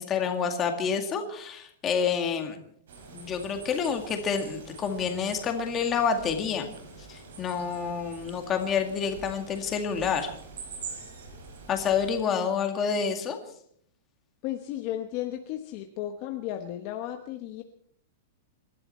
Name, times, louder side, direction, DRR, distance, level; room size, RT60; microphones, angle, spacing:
voice 1, 0.0-2.6 3.1-6.7 7.1-10.3 11.7-13.4, left 6 dB, 20° left, 5 dB, 2.0 m, -28 dB
sound 1, 2.9-12.2, right 4 dB, 75° right, 6.1 m, -45 dB
voice 2, 14.4-17.6, left 12 dB, 35° left, 5 dB, 1.1 m, -34 dB
27.0 x 12.5 x 4.4 m, 0.66 s
supercardioid pair, 170°, 0 cm